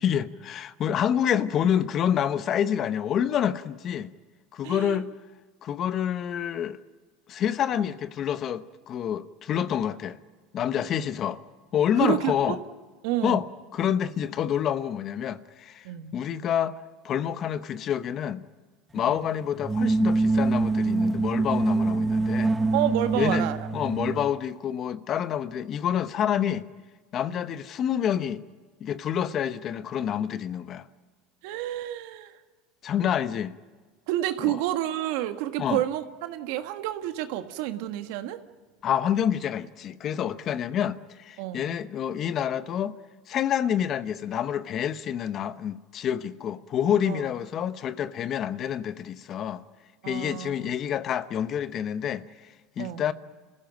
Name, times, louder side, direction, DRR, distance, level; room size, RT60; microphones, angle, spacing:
voice 1, 0.0-4.1 4.5-5.1 5.6-6.8 7.3-10.2 10.5-11.4 11.7-12.6 13.2-13.5 13.7-15.9 16.1-18.4 18.9-22.5 23.1-23.4 23.7-26.7 27.1-28.4 28.8-30.9 32.8-33.5 34.4-34.6 35.6-35.8 38.8-43.0 43.3-49.6 50.1-53.1, left 9 dB, 45° left, 0.9 m, -28 dB
voice 2, 4.6-5.0 12.0-12.6 13.0-13.4 15.8-16.1 19.1-19.2 22.7-23.6 31.4-32.3 34.1-38.4 41.4-41.7 47.1-47.3 50.0-50.7 52.8-53.0, right 13 dB, 70° right, 1.5 m, -29 dB
sound 1, 19.6-24.3, right 3 dB, 15° right, 0.7 m, -24 dB
27.5 x 15.5 x 9.1 m
supercardioid pair, 100°, 0 cm